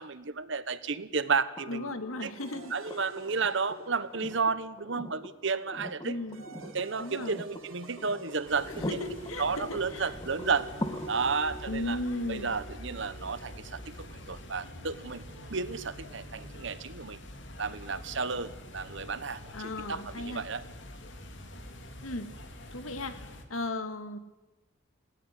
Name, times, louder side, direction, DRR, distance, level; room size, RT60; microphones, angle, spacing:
voice 1, 0.0-1.9 2.2-2.3 2.7-6.2 6.6-9.0 9.4-10.7 11.1-12.0 12.3-15.2 15.5-17.2 17.6-20.6, right 5 dB, 60° right, 15 dB, 1.1 m, -32 dB
sound 1, 1.6-15.5 17.2-17.3, equal, 20° left, 1.5 m, -44 dB
voice 2, 1.7-3.0 6.0-6.4 7.0-7.4 8.9-10.1 11.7-12.5 19.5-20.4 22.0-22.3 22.7-23.2 23.5-24.2, left 2 dB, 80° left, 9 dB, 2.2 m, -36 dB
sound 2, 2.4-5.0 6.0-17.2, right 2 dB, 75° right, 4.7 m, -52 dB
sound 3, 8.5-23.4, left 1 dB, 60° left, 2.5 m, -46 dB
18.5 x 17.5 x 9.9 m, 1.1 s
head